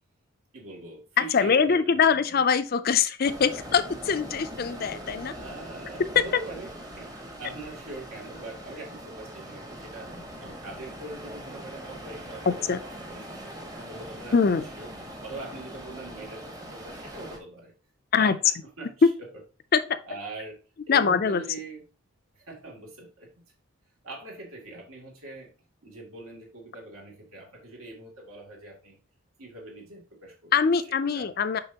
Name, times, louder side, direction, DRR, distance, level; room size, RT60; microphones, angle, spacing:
voice 1, 0.5-2.4 5.3-10.1 10.4-12.6 13.3-14.9 15.2-17.7 18.1-19.1 20.1-20.6 20.9-21.8 22.3-23.5 24.0-25.5 25.8-29.0 29.4-30.5 30.8-30.9 31.1-31.3, right 2 dB, 80° right, -1 dB, 2.5 m, -42 dB
voice 2, 1.3-5.3 12.5-12.8 14.3-14.6 18.1-18.4 19.7-20.0 20.9-21.4 30.5-31.6, left 6 dB, 45° left, 12 dB, 0.4 m, -23 dB
sound 1, 3.2-17.4, right 1 dB, 15° right, 0.9 m, -42 dB
6.8 x 5.3 x 2.8 m, 0.34 s
head